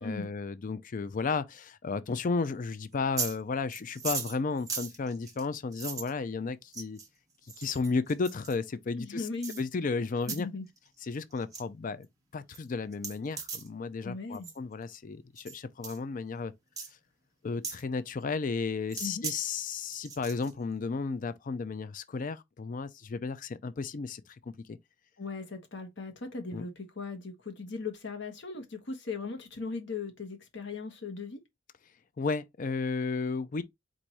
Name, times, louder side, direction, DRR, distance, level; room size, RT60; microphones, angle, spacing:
voice 1, 0.0-7.0 7.6-9.3 9.6-10.5 11.0-12.1 12.3-16.5 17.4-24.8 26.5-26.7 32.2-33.6, left 4 dB, 45° left, 0.4 m, -33 dB
sound 1, 2.9-3.4 3.7-6.1 6.7-7.1 7.5-8.5 9.4-9.6 10.2-10.4 10.8-11.1 11.3-11.6 12.0-12.1 12.5-12.6 12.9-13.7 14.3-14.6 15.4-15.6 15.8-16.0 16.8-16.9 17.6-17.8 18.9-19.4 19.7-20.5, right 5 dB, 20° right, 1.0 m, -38 dB
voice 2, 9.0-9.6 10.3-10.6 14.0-14.5 19.0-19.2 25.2-31.4, left 4 dB, 65° left, 1.2 m, -38 dB
4.6 x 2.6 x 4.1 m
head